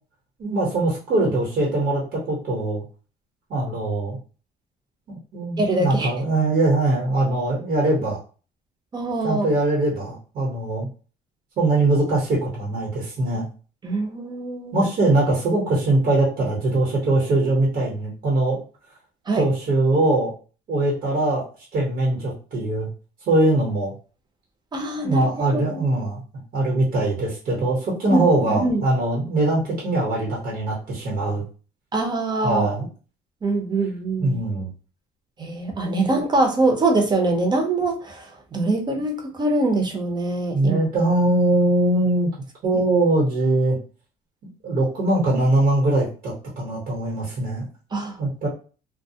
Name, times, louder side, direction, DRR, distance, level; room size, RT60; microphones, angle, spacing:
voice 1, 0.4-2.8 3.5-4.2 5.1-8.2 9.2-10.9 11.6-13.4 14.7-18.6 19.4-20.3 20.7-21.5 21.7-22.9 23.3-23.9 25.0-26.2 26.5-31.4 32.4-32.9 34.2-34.7 35.8-36.0 40.5-42.3 42.6-43.8 44.6-47.7 48.2-48.5, right 2 dB, 55° right, -3 dB, 1.1 m, -22 dB
voice 2, 5.6-6.1 8.9-9.5 13.8-14.8 19.3-19.5 24.7-25.8 28.1-28.8 31.9-32.7 33.4-34.4 35.4-40.8 47.9-48.2, right 2 dB, 25° right, 3 dB, 0.7 m, -23 dB
2.2 x 2.0 x 2.7 m, 0.36 s
cardioid pair, 110°, 17 cm